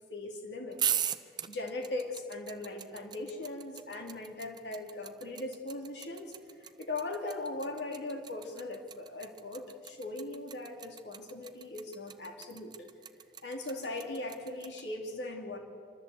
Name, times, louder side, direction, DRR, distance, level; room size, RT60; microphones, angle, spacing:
voice 1, 0.1-1.0 1.5-12.9 13.4-15.6, left 2 dB, 80° left, 2 dB, 3.1 m, -39 dB
sound 1, 0.7-14.8, right 9 dB, 25° right, 0.6 m, -38 dB
26.0 x 13.5 x 8.0 m, 2.2 s
head